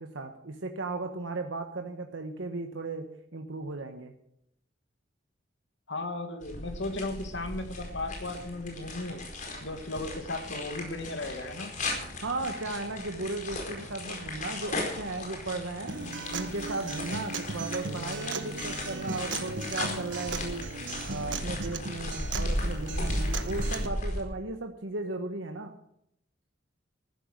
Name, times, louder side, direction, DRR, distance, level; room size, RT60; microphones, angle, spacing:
voice 1, 0.0-3.1 3.3-4.1 12.2-15.9 16.3-20.7 21.1-25.8, right 2 dB, 90° right, 4 dB, 1.2 m, -36 dB
voice 2, 5.9-9.2 9.6-11.7, left 2 dB, 70° left, 7 dB, 2.1 m, -35 dB
sound 1, 6.4-24.2, left 1 dB, 45° left, 4.7 m, -36 dB
Acoustic guitar, 15.9-23.9, right 4 dB, 70° right, 1.5 m, -37 dB
14.5 x 12.5 x 6.4 m, 0.76 s
head